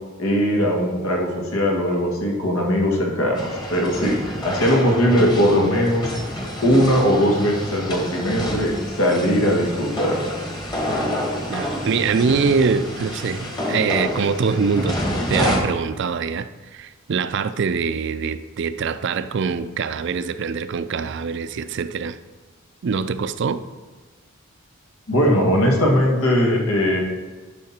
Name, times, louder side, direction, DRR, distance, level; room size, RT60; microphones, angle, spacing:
voice 1, 0.2-4.2 4.4-6.1 6.6-8.7 9.0-10.2 25.1-27.0, equal, 80° left, 0 dB, 1.8 m, -19 dB
sound 1, 3.4-15.6, equal, 20° left, 1.3 m, -28 dB
voice 2, 11.5-15.0 15.3-22.2 22.8-23.6, right 5 dB, 55° right, 12 dB, 0.4 m, -23 dB
10.5 x 5.7 x 4.3 m, 1.3 s
head